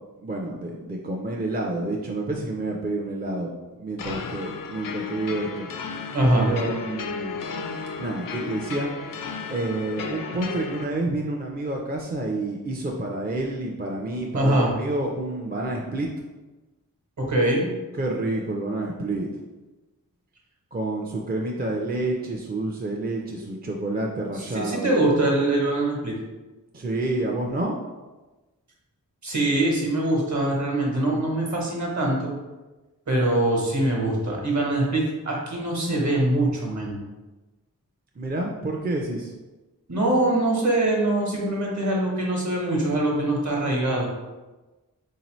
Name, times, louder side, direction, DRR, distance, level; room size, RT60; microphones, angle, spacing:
voice 1, 0.2-5.7 6.3-7.4 8.0-8.9 9.5-16.1 17.9-19.3 20.7-24.9 26.7-27.8 38.2-39.3, right 2 dB, 25° right, -1 dB, 0.5 m, -29 dB
sound 1, 4.0-10.8, left 5 dB, 70° left, 0.5 m, -34 dB
voice 2, 6.1-6.5 14.3-14.7 17.2-17.7 24.5-26.1 29.2-32.3 33.1-37.0 39.9-44.1, right 1 dB, 55° right, -2 dB, 1.2 m, -23 dB
3.8 x 2.8 x 3.0 m, 1.2 s
cardioid pair, 50°, 35 cm